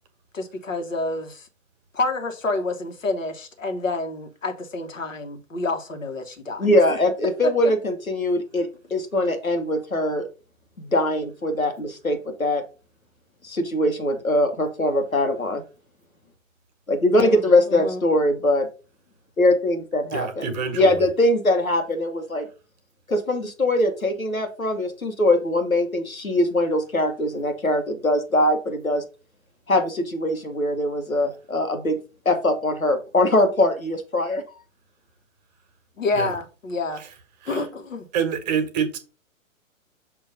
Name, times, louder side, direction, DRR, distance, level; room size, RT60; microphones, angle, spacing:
voice 1, 0.3-1.5 1.9-6.7 7.4-7.5 17.1-17.4 17.7-18.0 36.0-37.0 37.5-38.1, left 3 dB, 70° left, 1.5 m, -28 dB
voice 2, 6.6-10.3 10.8-12.6 13.4-15.6 16.9-18.7 19.4-22.5 23.1-29.0 29.7-32.0 32.2-34.6, left 1 dB, 85° left, 1.4 m, -22 dB
voice 3, 20.1-21.0 36.1-36.3 37.0-37.1 37.4-37.6 38.1-39.0, right 6 dB, 30° right, 1.2 m, -27 dB
6.7 x 3.0 x 5.1 m
figure-of-eight pair, 115°, 41 cm